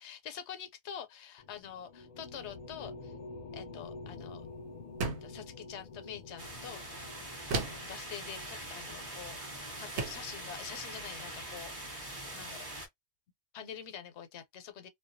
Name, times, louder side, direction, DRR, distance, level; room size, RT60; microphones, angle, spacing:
voice 1, 0.0-3.1 3.5-4.5 5.0-6.8 7.5-9.4 9.8-11.7 12.2-12.7 13.5-14.9, left 8 dB, 90° left, 0.9 m, -46 dB
sound 1, 1.4-11.1, left 3 dB, 60° left, 0.6 m, -49 dB
sound 2, 5.0-5.4 7.5-8.0 9.3-9.4 10.0-10.3, right 4 dB, 90° right, 0.9 m, -34 dB
sound 3, 6.4-12.9, right 1 dB, 35° right, 0.7 m, -43 dB
2.2 x 2.2 x 2.5 m
omnidirectional pair, 1.1 m